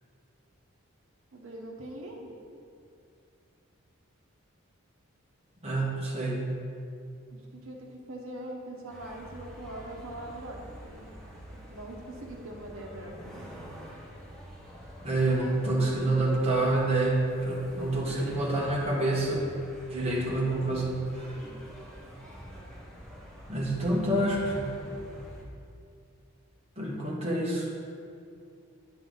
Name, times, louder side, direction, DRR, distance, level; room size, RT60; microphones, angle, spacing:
voice 1, 1.3-2.3 7.3-11.1 11.5-13.4 21.4-21.6, right 1 dB, 65° right, 0 dB, 1.1 m, -42 dB
voice 2, 5.6-6.5 15.0-19.4 19.9-21.3 23.5-24.8 26.8-27.7, right 2 dB, 30° right, -4 dB, 1.3 m, -27 dB
sound 1, 8.9-25.4, equal, 5° left, 1.0 m, -47 dB
8.8 x 6.1 x 3.9 m, 2.4 s
head